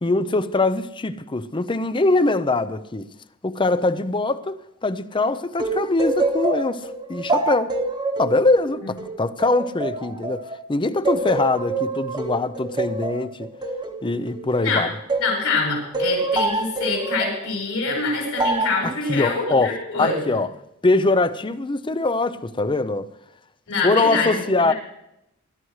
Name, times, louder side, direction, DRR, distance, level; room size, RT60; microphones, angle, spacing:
voice 1, 0.0-3.1 3.4-7.7 8.2-13.5 14.0-14.9 18.8-19.7 20.0-20.5 20.8-23.1 23.8-24.7, left 2 dB, 20° left, 0.6 m, -22 dB
sound 1, 5.6-10.6 11.1-15.4 15.9-17.4 18.4-18.8, right 2 dB, 20° right, 1.1 m, -26 dB
voice 2, 14.5-14.8 15.2-20.4 23.7-24.7, left 3 dB, 70° left, 5.5 m, -25 dB
20.5 x 12.5 x 3.2 m
head